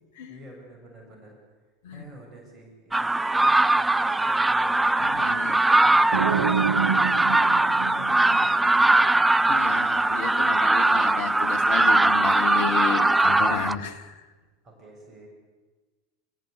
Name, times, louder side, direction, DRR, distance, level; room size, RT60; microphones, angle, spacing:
voice 1, 0.3-1.4 1.9-4.8 5.4-6.3 7.7-9.1 14.6-15.3, right 1 dB, 30° right, 0 dB, 7.7 m, -49 dB
sound 1, 2.9-13.8, right 2 dB, 10° right, 0.7 m, -21 dB
voice 2, 5.0-5.5 6.3-6.4 9.5-14.2, left 6 dB, 65° left, 7 dB, 2.3 m, -32 dB
sound 2, 6.1-8.9, right 6 dB, 75° right, 1.0 m, -28 dB
26.5 x 15.0 x 8.5 m, 1.3 s
hypercardioid pair, 85°, 0 cm